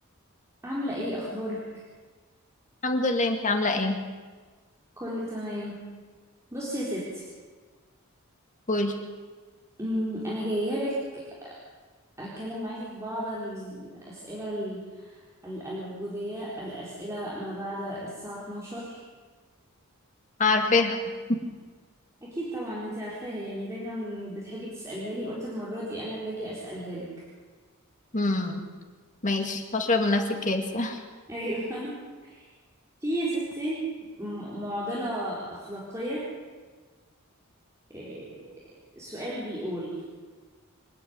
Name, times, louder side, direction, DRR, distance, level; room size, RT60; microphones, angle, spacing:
voice 1, 0.6-1.6 5.0-5.8 6.5-7.3 9.8-11.5 12.2-19.0 22.2-27.1 31.3-32.0 32.2-32.5 33.0-33.8 34.2-36.3 37.9-38.5 38.9-40.0, equal, 15° right, -7 dB, 4.1 m, -33 dB
voice 2, 2.8-4.0 8.7-8.9 20.4-21.0 28.1-28.6 29.2-31.0, left 3 dB, 35° left, 4 dB, 2.2 m, -25 dB
27.0 x 10.0 x 9.6 m, 1.4 s
head